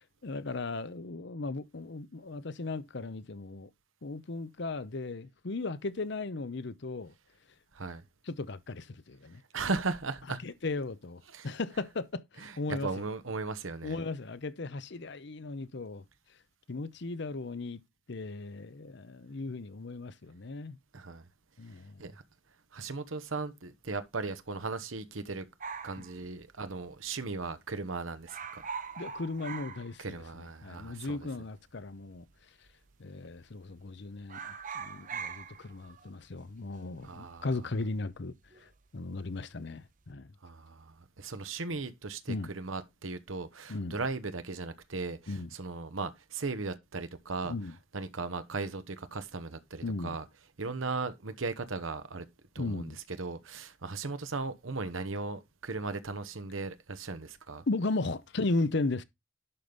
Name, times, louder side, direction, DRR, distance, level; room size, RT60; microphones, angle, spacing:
voice 1, 0.2-3.7 4.0-7.1 8.3-9.4 10.4-13.1 13.8-16.0 16.7-17.8 18.1-20.8 21.6-22.1 26.0-26.1 29.0-32.2 33.0-40.3 42.3-42.5 43.7-44.0 45.3-45.5 47.5-47.8 49.8-50.2 52.6-53.0 57.7-59.0, left 3 dB, 60° left, 0.7 m, -36 dB
voice 2, 9.5-10.4 11.3-11.5 12.4-14.0 20.9-21.2 22.0-22.2 22.7-25.5 25.8-28.6 30.0-31.2 37.0-37.5 40.4-47.5 47.9-50.2 50.6-52.3 52.5-52.9 53.2-57.6, right 3 dB, 75° right, 1.1 m, -37 dB
sound 1, 25.6-27.1 27.3-27.4 27.7-27.9 28.2-30.5 30.8-30.9 31.7-32.3 32.7-32.9 33.2-33.9 34.2-38.8 39.1-39.6, right 6 dB, 40° right, 0.9 m, -43 dB
11.5 x 5.2 x 3.9 m
head